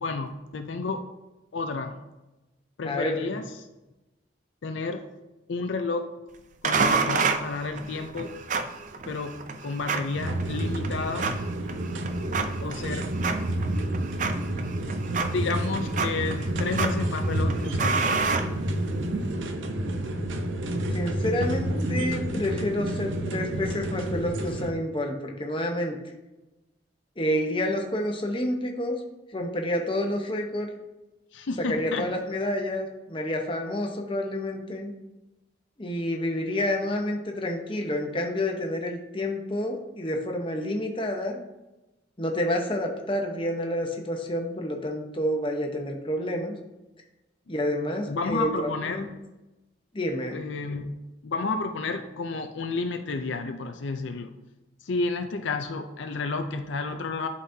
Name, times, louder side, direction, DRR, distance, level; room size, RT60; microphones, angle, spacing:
voice 1, 0.0-1.0 1.5-2.0 2.8-3.5 4.6-5.0 5.5-6.1 6.6-8.4 9.1-11.3 12.6-13.2 14.4-14.5 15.2-18.2 31.3-32.1 48.1-49.2 50.3-51.0 51.2-54.3 54.8-57.3, left 3 dB, 75° left, 6 dB, 0.5 m, -31 dB
voice 2, 2.8-3.4 20.9-26.0 27.2-29.0 29.3-30.7 31.7-34.9 35.8-41.4 42.2-46.5 47.5-49.1 49.9-50.4, left 1 dB, 25° left, 2 dB, 0.9 m, -29 dB
sound 1, 6.6-19.1, right 4 dB, 40° right, 0.5 m, -30 dB
sound 2, 10.2-24.7, right 1 dB, 85° right, 0.7 m, -29 dB
11.5 x 4.1 x 2.7 m, 1.0 s
head